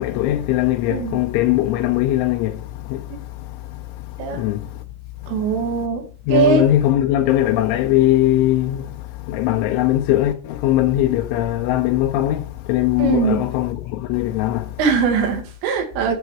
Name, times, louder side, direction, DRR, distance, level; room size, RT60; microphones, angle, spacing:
voice 1, 0.0-4.8 5.2-5.9 6.3-14.8, left 14 dB, 80° left, 3.0 m, -21 dB
voice 2, 5.3-6.7 13.0-13.5 14.8-16.2, right 6 dB, 75° right, 4.6 m, -21 dB
10.5 x 4.6 x 8.1 m
omnidirectional pair, 5.9 m